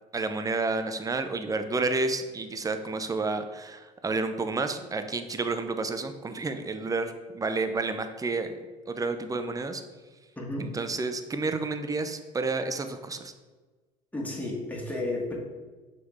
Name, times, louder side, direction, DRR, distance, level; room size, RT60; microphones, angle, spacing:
voice 1, 0.1-8.6 8.9-9.8 10.6-13.3, right 3 dB, 15° right, 8 dB, 0.6 m, -30 dB
voice 2, 10.4-10.7 14.1-15.4, left 2 dB, 10° left, -2 dB, 1.9 m, -32 dB
6.4 x 4.7 x 3.5 m, 1.3 s
hypercardioid pair, 70°, 21 cm